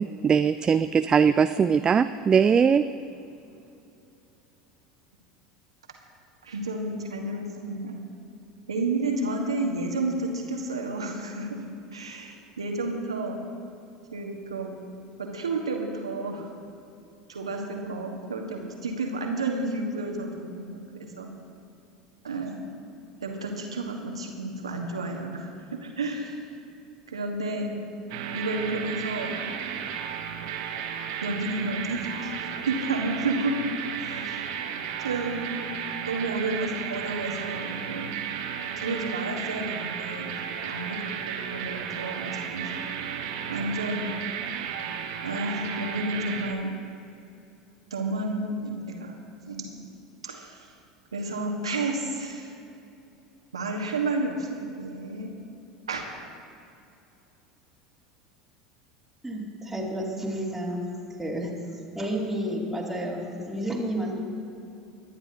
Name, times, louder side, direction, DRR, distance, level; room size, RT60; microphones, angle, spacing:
voice 1, 0.0-2.8, right 6 dB, 25° right, 11 dB, 0.3 m, -21 dB
voice 2, 6.4-8.0 8.7-11.7 11.9-13.4 14.1-14.8 15.2-16.5 17.3-21.3 22.2-22.6 23.2-26.4 27.1-27.8 28.3-29.4 31.2-32.3 32.7-33.5 34.0-34.4 35.0-35.4 36.1-38.2 38.8-42.7 43.5-44.1 45.2-46.8 47.9-49.1 49.5-49.7 50.2-50.7 51.1-52.5 53.5-55.3 55.9-56.0, right 2 dB, 80° right, 1 dB, 1.6 m, -31 dB
sound 1, 28.1-46.5, right 8 dB, 60° right, 1.1 m, -34 dB
voice 3, 59.2-60.8 61.2-61.5 61.9-64.1, right 1 dB, 5° right, -6 dB, 2.9 m, -31 dB
23.5 x 10.5 x 2.9 m, 2.7 s
figure-of-eight pair, 75°, 3 cm